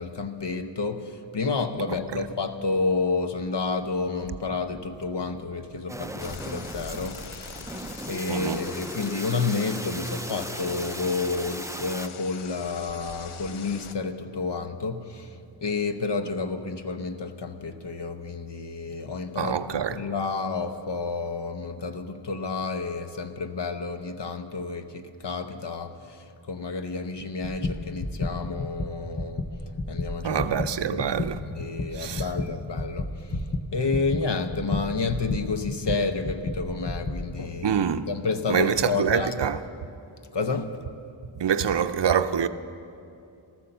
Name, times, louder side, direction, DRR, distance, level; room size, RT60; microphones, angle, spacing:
voice 1, 0.0-7.7 8.1-15.3 15.6-26.2 26.5-29.5 29.9-30.5 30.9-31.0 31.4-33.4 33.7-39.3 40.3-40.7, left 4 dB, 55° left, 0.9 m, -30 dB
sound 1, 5.9-12.1, right 1 dB, 5° right, 0.4 m, -37 dB
sound 2, 6.2-14.0, left 6 dB, 85° left, 0.8 m, -43 dB
voice 2, 8.3-8.7 19.4-20.0 30.2-31.4 31.9-32.3 37.6-38.1 38.5-39.6 41.4-42.5, right 8 dB, 60° right, 0.6 m, -25 dB
sound 3, 27.2-37.3, left 2 dB, 20° left, 0.8 m, -32 dB
14.0 x 14.0 x 6.7 m
wide cardioid pair, 85°, 49 cm